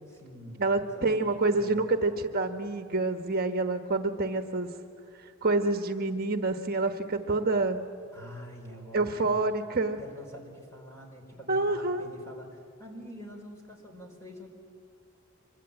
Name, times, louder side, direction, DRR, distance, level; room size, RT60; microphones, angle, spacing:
voice 1, 0.1-1.8 8.1-9.5 10.0-14.5, equal, 15° left, 1 dB, 4.8 m, -46 dB
voice 2, 0.6-4.7 5.4-7.8 8.9-10.0 11.5-12.1, right 3 dB, 50° right, 7 dB, 1.2 m, -27 dB
25.5 x 23.5 x 9.0 m, 2.4 s
head